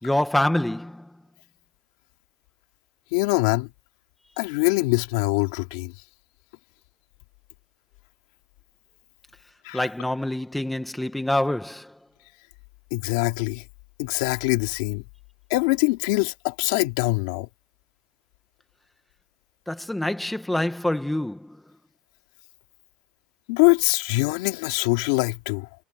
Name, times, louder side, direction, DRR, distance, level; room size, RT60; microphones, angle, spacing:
voice 1, 0.0-1.1 9.7-12.0 19.7-21.6, left 1 dB, 5° left, 1.5 m, -26 dB
voice 2, 3.1-3.7 4.4-5.9 9.6-9.8 12.9-13.6 14.0-15.0 15.5-17.5 23.5-25.7, left 23 dB, 85° left, 3.1 m, -23 dB
cardioid pair, 165°, 3 cm